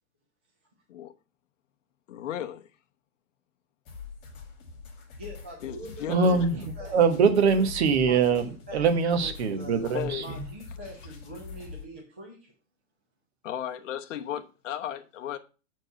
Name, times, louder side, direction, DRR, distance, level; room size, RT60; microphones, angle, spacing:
voice 1, 2.1-2.7 5.6-6.5 9.8-10.4 13.4-15.4, left 11 dB, 65° left, 1.0 m, -35 dB
sound 1, 3.9-11.8, left 5 dB, 25° left, 2.2 m, -44 dB
voice 2, 5.2-7.0 8.0-9.8 10.2-12.5, equal, 10° right, 0.3 m, -44 dB
voice 3, 6.1-8.4 8.7-10.4, right 5 dB, 50° right, 1.3 m, -23 dB
7.7 x 4.7 x 5.5 m
supercardioid pair, 170°, 41 cm